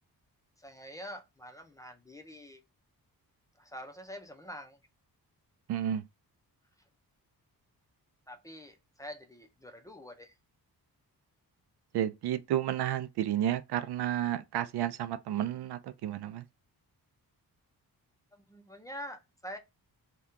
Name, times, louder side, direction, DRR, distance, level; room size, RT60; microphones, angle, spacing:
voice 1, 0.6-2.6 3.6-4.8 8.3-10.4 18.3-19.6, equal, 10° left, 0.5 m, -46 dB
voice 2, 5.7-6.0 11.9-16.4, right 11 dB, 90° right, 0.5 m, -31 dB
2.8 x 2.3 x 3.5 m
wide cardioid pair, 125°, 38 cm